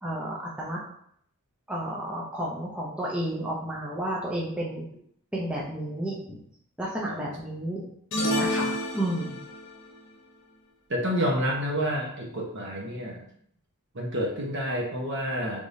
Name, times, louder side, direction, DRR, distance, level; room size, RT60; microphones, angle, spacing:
voice 1, 0.0-0.8 1.7-4.9 5.3-6.4 6.8-7.9 8.2-9.4, right 1 dB, 5° right, -5 dB, 0.5 m, -32 dB
sound 1, 8.1-9.7, left 1 dB, 55° left, 1.0 m, -28 dB
voice 2, 10.9-13.2 13.9-15.6, equal, 55° right, -1 dB, 0.9 m, -29 dB
3.5 x 3.3 x 2.6 m, 0.67 s
head